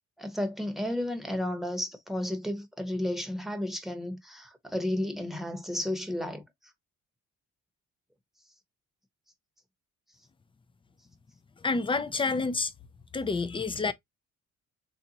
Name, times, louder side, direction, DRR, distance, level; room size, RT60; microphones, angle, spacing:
voice 1, 0.2-6.4, left 1 dB, ahead, 1.0 m, -32 dB
voice 2, 11.6-12.7 13.1-13.9, left 4 dB, 15° left, 0.5 m, -28 dB
3.5 x 2.7 x 2.8 m
cardioid pair, 90°, 30 cm